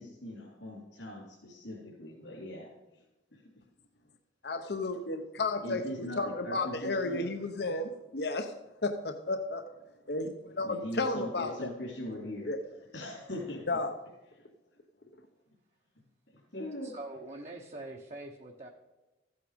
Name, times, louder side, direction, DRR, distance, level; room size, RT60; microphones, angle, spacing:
voice 1, 0.0-3.0 3.3-3.4 5.6-7.2 10.6-12.5 12.9-13.7 16.3-16.9, left 1 dB, 75° left, -5 dB, 3.5 m, -41 dB
voice 2, 4.4-5.8 6.2-8.5 8.8-9.6 10.1-11.7 12.4-12.6 13.7-13.9, left 2 dB, 60° left, 7 dB, 0.8 m, -32 dB
voice 3, 16.8-18.7, right 2 dB, 35° right, 1 dB, 1.0 m, -44 dB
15.0 x 8.5 x 5.2 m, 1.1 s
head